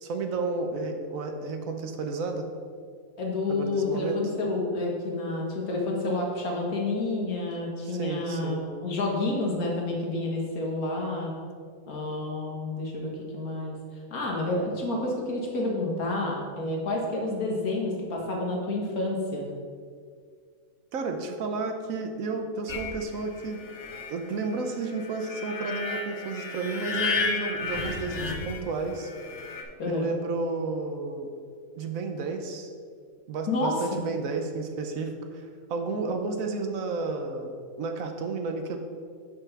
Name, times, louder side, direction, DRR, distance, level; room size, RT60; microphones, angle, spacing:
voice 1, 0.0-2.5 3.5-4.2 7.9-8.6 20.9-23.6 24.1-29.1 29.9-31.3 31.7-32.7 33.3-38.8, right 3 dB, 70° right, 5 dB, 1.2 m, -32 dB
voice 2, 3.2-11.3 11.9-13.8 14.1-19.5 29.8-30.1 33.5-34.0, left 2 dB, 90° left, -1 dB, 1.9 m, -29 dB
sound 1, 22.7-29.6, left 4 dB, 60° left, 1.1 m, -33 dB
6.1 x 5.4 x 5.8 m, 2.1 s
omnidirectional pair, 1.5 m